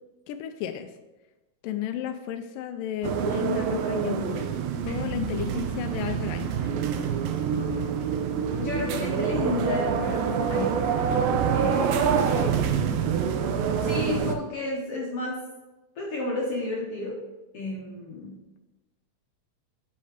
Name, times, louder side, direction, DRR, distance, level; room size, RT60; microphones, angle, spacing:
voice 1, 0.3-0.9 1.6-4.6 4.9-6.8, left 10 dB, 80° left, 7 dB, 2.0 m, -33 dB
sound 1, 3.0-14.4, right 7 dB, 80° right, 2.3 m, -26 dB
voice 2, 8.6-13.2 13.8-15.4 16.0-17.2 17.5-18.4, left 2 dB, 65° left, -2 dB, 1.6 m, -32 dB
8.6 x 5.7 x 5.0 m, 1.1 s
omnidirectional pair, 4.2 m